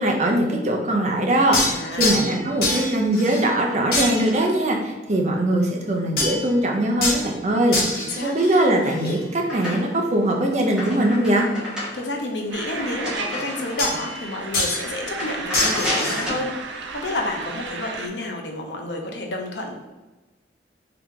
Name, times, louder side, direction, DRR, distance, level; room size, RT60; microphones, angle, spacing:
voice 1, 0.0-7.8 8.2-11.5, right 1 dB, 40° right, 1 dB, 0.6 m, -21 dB
sound 1, 1.5-2.4 2.6-3.6 3.9-4.5 6.2-6.5 7.0-7.3 7.7-9.2 13.8-14.3 14.5-14.9 15.5-16.2, left 2 dB, 55° left, 1.1 m, -25 dB
voice 2, 1.7-2.2 7.9-8.3 11.9-16.5 16.9-19.8, left 2 dB, 70° left, 2 dB, 0.7 m, -30 dB
sound 2, 8.7-10.1 10.5-14.1 14.5-14.7 15.1-16.5, left 1 dB, 5° right, 1.3 m, -31 dB
sound 3, 12.5-18.1, right 4 dB, 85° right, 0.5 m, -34 dB
3.6 x 2.9 x 3.6 m, 1.1 s
head